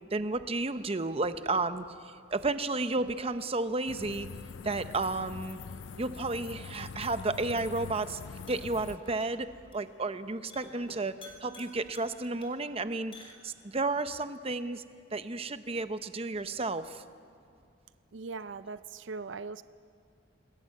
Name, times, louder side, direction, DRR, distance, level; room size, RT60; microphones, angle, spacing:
voice 1, 0.1-4.3 4.6-5.6 6.0-8.2 8.5-11.2 11.4-14.8 15.1-17.0, right 3 dB, 30° right, 11 dB, 0.8 m, -32 dB
sound 1, 3.9-9.0, left 5 dB, 75° left, 0.5 m, -43 dB
sound 2, 6.9-13.9, left 2 dB, 30° left, 3.8 m, -56 dB
voice 2, 18.1-19.6, right 4 dB, 75° right, 14 dB, 0.5 m, -40 dB
27.5 x 20.5 x 7.6 m, 2.5 s
head